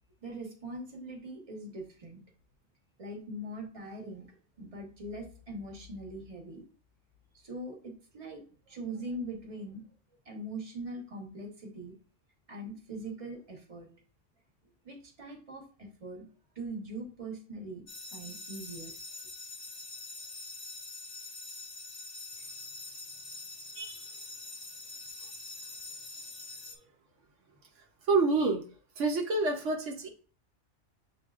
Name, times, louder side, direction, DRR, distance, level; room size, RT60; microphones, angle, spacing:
voice 1, 0.2-2.2 3.0-4.3 4.6-6.6 7.3-9.8 10.2-11.9 12.5-13.9 14.8-16.3 16.5-17.8 18.1-18.9, right 1 dB, 30° right, 1 dB, 1.1 m, -41 dB
sound 1, 17.9-26.8, left 2 dB, 45° left, 0.7 m, -44 dB
voice 2, 28.1-28.6 29.0-30.1, right 3 dB, 80° right, 1 dB, 1.1 m, -27 dB
7.4 x 2.7 x 2.4 m, 0.40 s
omnidirectional pair, 1.2 m